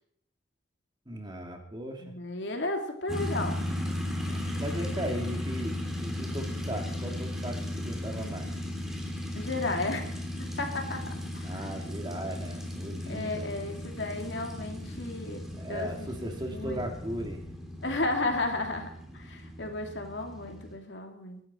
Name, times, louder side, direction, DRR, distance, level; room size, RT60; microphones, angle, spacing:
voice 1, 1.1-2.1 4.6-8.5 11.4-13.5 15.6-17.4, equal, 25° right, 2 dB, 2.5 m, -37 dB
voice 2, 2.0-3.6 4.3-4.6 9.4-11.6 13.1-15.4 15.7-16.3 16.5-16.9 17.8-18.9 19.1-21.4, left 2 dB, 70° left, 3 dB, 2.5 m, -34 dB
sound 1, 3.1-20.7, left 1 dB, ahead, 2.8 m, -36 dB
24.0 x 11.5 x 4.4 m, 0.68 s
head